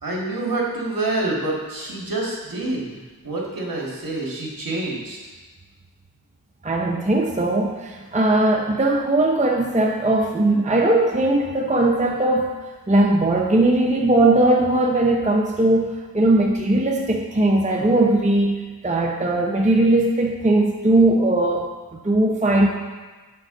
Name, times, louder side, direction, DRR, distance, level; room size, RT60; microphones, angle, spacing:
voice 1, 0.0-3.0 3.2-5.2, right 2 dB, 60° right, -3 dB, 1.9 m, -27 dB
voice 2, 6.6-12.5 12.9-21.7 22.0-22.7, right 2 dB, 20° right, 0 dB, 0.7 m, -19 dB
7.7 x 5.4 x 3.8 m, 1.3 s
wide cardioid pair, 70°, 38 cm